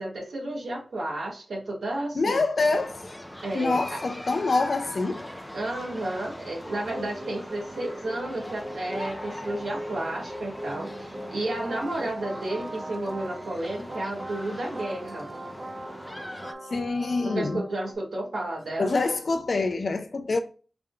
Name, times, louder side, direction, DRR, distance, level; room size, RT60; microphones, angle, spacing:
voice 1, 0.0-2.4 3.4-4.0 5.5-15.3 17.2-19.0, right 1 dB, 85° right, 1.5 m, -32 dB
voice 2, 2.1-3.0 3.5-5.2 16.7-17.6 18.8-20.4, left 3 dB, 65° left, 0.6 m, -26 dB
sound 1, 2.6-16.5, left 1 dB, 10° left, 0.6 m, -41 dB
sound 2, 6.7-17.9, right 1 dB, 50° right, 0.8 m, -40 dB
5.0 x 3.5 x 2.2 m
wide cardioid pair, 80°, 0 cm